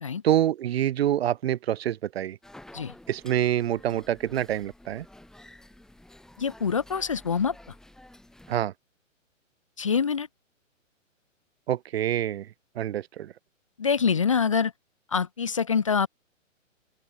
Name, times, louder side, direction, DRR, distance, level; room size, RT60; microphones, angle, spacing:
voice 1, 0.2-2.4 3.1-5.1 8.5-8.7 11.7-12.5 12.8-13.3, right 11 dB, 55° right, 0.5 m, -26 dB
sound 1, 2.4-8.6, left 1 dB, ahead, 1.6 m, -51 dB
voice 2, 6.4-7.6 9.8-10.3 13.8-14.7 15.1-16.1, left 6 dB, 25° left, 0.4 m, -25 dB
open air
hypercardioid pair, 155°, 39 cm